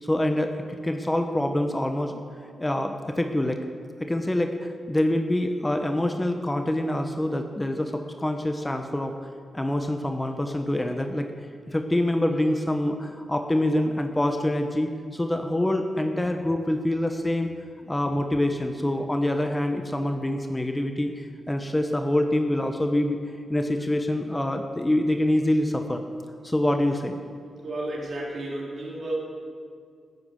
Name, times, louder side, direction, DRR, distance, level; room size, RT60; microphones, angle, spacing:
voice 1, 0.0-3.6 4.0-9.1 9.5-11.3 11.7-17.5 17.9-23.2 23.5-26.0 26.4-27.2, left 1 dB, 20° left, 5 dB, 1.1 m, -26 dB
voice 2, 27.6-29.1, right 1 dB, 60° right, -4 dB, 3.5 m, -32 dB
11.5 x 9.4 x 7.8 m, 2.1 s
supercardioid pair, 50°, 0 cm